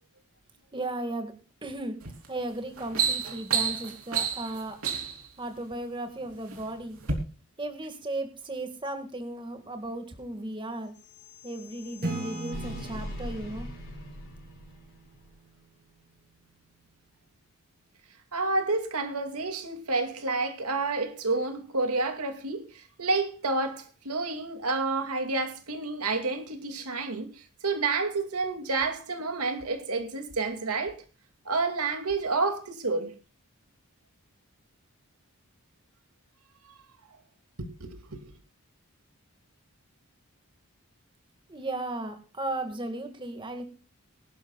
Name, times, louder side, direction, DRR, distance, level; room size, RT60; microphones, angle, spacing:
voice 1, 0.7-1.3 1.6-2.0 2.3-4.8 5.4-7.0 7.6-10.9 11.4-13.7 41.5-43.6, right 2 dB, 20° right, 1.9 m, -35 dB
sound 1, 2.0-2.3 2.6-5.3 6.1-6.6 7.0-7.1, right 7 dB, 75° right, 3.3 m, -29 dB
sound 2, 10.9-15.3, left 1 dB, 50° left, 6.1 m, -42 dB
Acoustic guitar / Strum, 12.0-15.6, right 2 dB, 40° right, 3.2 m, -39 dB
voice 2, 18.3-31.0 31.5-33.1 37.6-38.3, right 3 dB, 90° right, 2.4 m, -29 dB
22.5 x 11.5 x 2.4 m
head